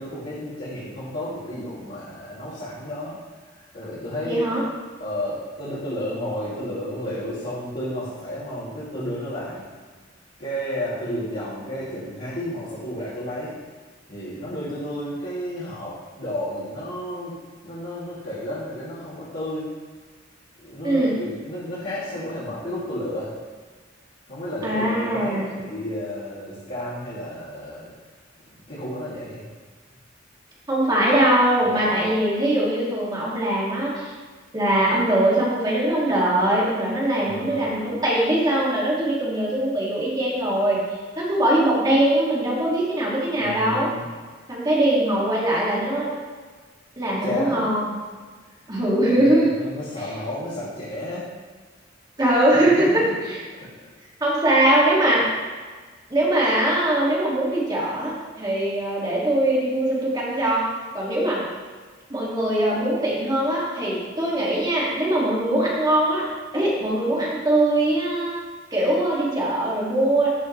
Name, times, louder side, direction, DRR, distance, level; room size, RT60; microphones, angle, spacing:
voice 1, 0.0-3.2 3.5-4.4 5.0-9.7 10.4-13.5 14.1-17.4 17.6-19.6 20.6-23.3 24.3-27.9 28.7-29.4 31.6-32.0 37.2-37.7 43.4-44.1 44.5-44.6 47.2-47.7 49.1-51.2 52.9-53.1, left 1 dB, 50° left, -13 dB, 2.7 m, -32 dB
voice 2, 4.2-4.6 20.8-21.2 24.6-25.5 30.7-34.1 34.5-40.8 41.2-43.9 44.5-46.1 47.0-47.9 48.7-49.5 52.2-53.4 54.2-55.2 56.1-60.7 60.9-61.4 62.1-66.2 66.5-68.3 68.7-70.3, right 1 dB, 20° right, -6 dB, 2.3 m, -21 dB
13.5 x 5.4 x 3.2 m, 1.4 s
head